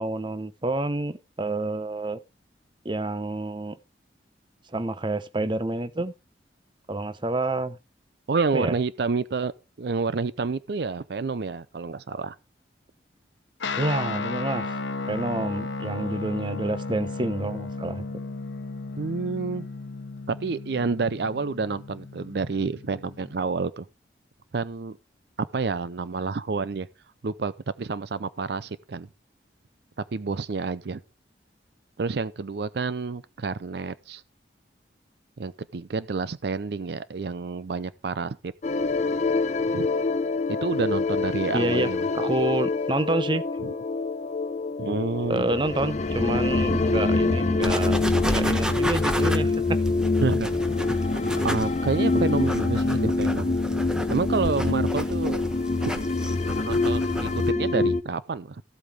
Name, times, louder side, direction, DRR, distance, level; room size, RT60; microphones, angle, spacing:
voice 1, 0.0-2.2 2.8-3.8 4.7-6.1 6.9-7.8 8.5-8.7 13.8-14.7 15.1-18.0 41.5-43.4 45.3-48.0 48.3-49.8, right 2 dB, 25° right, 0.7 m, -28 dB
voice 2, 8.3-9.5 9.8-12.4 19.0-19.7 20.3-23.9 24.5-25.0 25.4-26.9 27.2-29.1 30.1-31.0 32.0-34.2 35.4-38.5 39.7-39.9 40.5-42.1 43.6-43.7 44.8-45.5 46.7-46.8 50.2-50.5 51.4-53.6 54.1-55.4 55.8-55.9 56.6-58.6, right 4 dB, 60° right, 0.5 m, -29 dB
Guitar, 13.6-23.4, left 3 dB, 85° left, 1.0 m, -34 dB
sound 1, 38.6-58.0, left 3 dB, 40° left, 0.6 m, -25 dB
sound 2, 47.6-57.5, equal, 5° right, 1.0 m, -33 dB
14.0 x 8.2 x 3.5 m
head